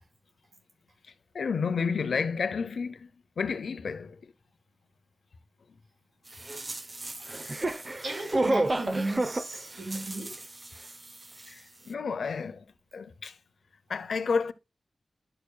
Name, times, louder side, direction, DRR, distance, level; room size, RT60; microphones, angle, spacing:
voice 1, 1.3-3.1 3.4-4.2 11.5-11.6 11.9-12.6 12.9-13.3 13.9-14.5, left 5 dB, 90° left, 0.8 m, -30 dB
sound 1, 6.3-11.1 11.4-11.5, right 2 dB, 30° right, 0.8 m, -31 dB
voice 2, 8.0-10.3, right 2 dB, 70° right, 5.4 m, -35 dB
12.0 x 6.5 x 2.3 m
wide cardioid pair, 100°, 0 cm